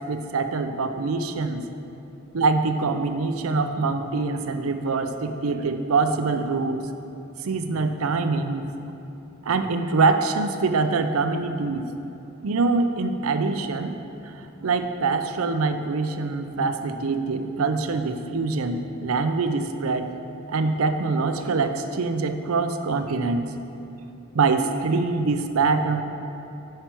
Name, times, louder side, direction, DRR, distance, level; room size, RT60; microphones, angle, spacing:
voice 1, 0.0-1.7 2.3-6.8 7.4-8.7 9.4-11.9 12.4-13.9 14.3-20.1 20.5-23.6 24.3-26.0, right 4 dB, 80° right, 8 dB, 0.5 m, -24 dB
8.9 x 5.7 x 4.4 m, 3.0 s
head